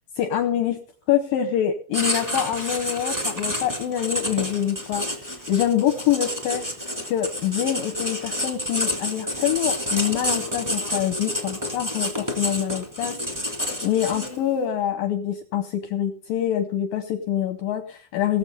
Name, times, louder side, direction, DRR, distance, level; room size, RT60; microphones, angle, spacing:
voice 1, 0.2-0.8 1.1-5.0 5.5-6.6 7.1-13.2 13.8-18.4, left 10 dB, 80° left, 8 dB, 2.0 m, -25 dB
Writing, 1.9-14.5, left 1 dB, 15° right, 0.7 m, -29 dB
18.0 x 7.4 x 5.3 m, 0.42 s
omnidirectional pair, 5.3 m